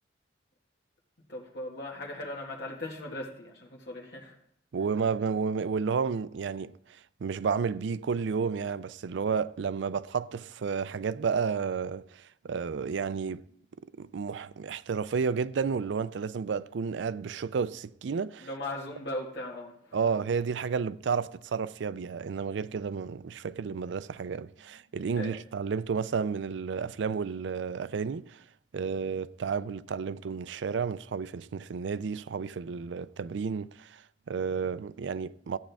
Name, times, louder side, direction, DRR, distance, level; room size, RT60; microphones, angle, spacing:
voice 1, 1.3-4.4 18.4-20.0 25.1-25.4 28.9-29.1, left 1 dB, 60° left, 1.7 m, -38 dB
voice 2, 4.7-6.7 7.2-13.4 14.0-18.5 19.9-28.4 28.7-34.0 34.3-35.6, right 5 dB, 70° right, 0.4 m, -31 dB
14.0 x 8.9 x 3.5 m
head